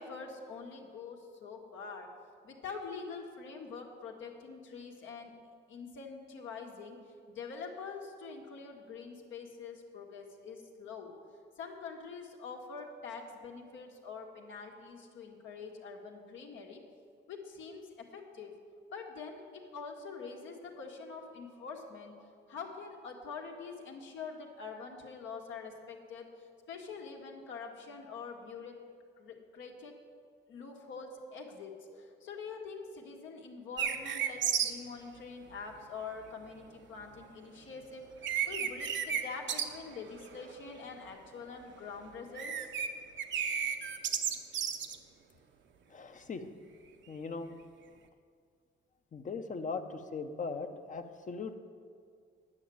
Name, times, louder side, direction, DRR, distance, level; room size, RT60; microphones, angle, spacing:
voice 1, 0.0-2.1 2.4-5.3 5.7-7.0 7.3-11.1 11.6-16.8 17.3-18.5 18.9-28.8 29.2-30.0 30.5-38.0 38.4-42.7, left 5 dB, 75° left, 1 dB, 1.7 m, -45 dB
sound 1, 33.8-34.7 37.8-37.9 38.2-39.2 39.5-39.6 39.9-40.5 40.8-41.1 42.2-42.9 43.2-45.0, right 8 dB, 70° right, 0.9 m, -32 dB
voice 2, 45.9-46.5 47.1-47.6 49.1-51.6, left 4 dB, 40° left, 8 dB, 0.9 m, -39 dB
9.7 x 6.3 x 8.6 m, 2.2 s
cardioid pair, 90°, 20 cm